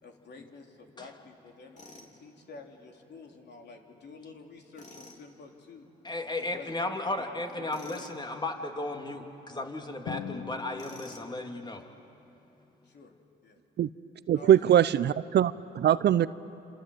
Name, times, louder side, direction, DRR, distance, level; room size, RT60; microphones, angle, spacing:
voice 1, 0.0-5.8 6.4-7.3 7.6-8.1 12.8-13.1 13.4-13.6 14.3-14.8, left 3 dB, 60° left, 2 dB, 3.3 m, -49 dB
Tools, 1.8-2.1 4.7-5.2 7.7-8.2 10.8-11.4, left 2 dB, 40° left, 4.4 m, -49 dB
voice 2, 6.0-11.8, left 2 dB, 20° left, 3 dB, 3.1 m, -35 dB
Drum, 10.1-11.8, left 8 dB, 85° left, 1.8 m, -41 dB
voice 3, 14.3-16.3, right 10 dB, 60° right, 16 dB, 0.7 m, -22 dB
27.5 x 27.0 x 8.0 m, 2.9 s
supercardioid pair, 60°, 20 cm